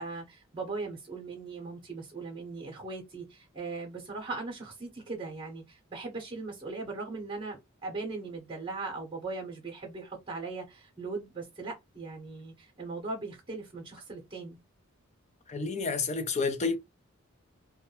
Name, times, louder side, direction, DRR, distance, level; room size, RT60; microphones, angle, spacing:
voice 1, 0.0-14.6, right 3 dB, 25° right, 0.7 m, -39 dB
voice 2, 15.5-16.8, left 4 dB, 35° left, 0.5 m, -29 dB
2.3 x 2.1 x 2.9 m
head